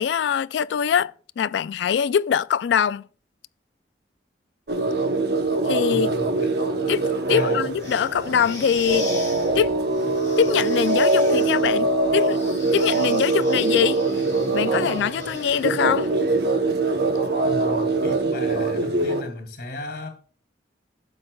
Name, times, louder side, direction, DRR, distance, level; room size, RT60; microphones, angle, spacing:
voice 1, 0.0-3.1 5.6-6.1 6.9-9.1 9.6-9.8 10.4-12.4 12.7-14.0 14.5-16.1, left 8 dB, 75° left, 0.3 m, -23 dB
sound 1, 4.7-19.2, right 2 dB, 60° right, 1.0 m, -23 dB
voice 2, 5.9-6.5 7.3-7.6 17.4-20.1, left 1 dB, 60° left, 2.4 m, -34 dB
sound 2, 7.7-16.0, left 3 dB, 15° left, 4.7 m, -40 dB
12.0 x 7.6 x 2.3 m
head